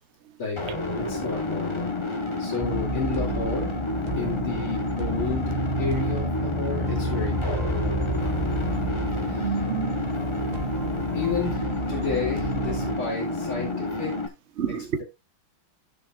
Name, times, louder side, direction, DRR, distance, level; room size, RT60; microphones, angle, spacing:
sound 1, 0.6-14.3, left 2 dB, 20° left, 0.9 m, -30 dB
voice 1, 0.9-1.9 2.4-3.7 4.2-5.5 5.8-7.8 9.1-9.6 11.1-14.1 14.7-15.0, left 5 dB, 75° left, 3.9 m, -32 dB
sound 2, 2.6-13.0, right 2 dB, 20° right, 1.8 m, -30 dB
voice 2, 9.4-10.0 12.0-12.1 13.7-13.8 14.6-15.0, right 7 dB, 60° right, 0.7 m, -29 dB
15.0 x 6.7 x 2.5 m
omnidirectional pair, 2.4 m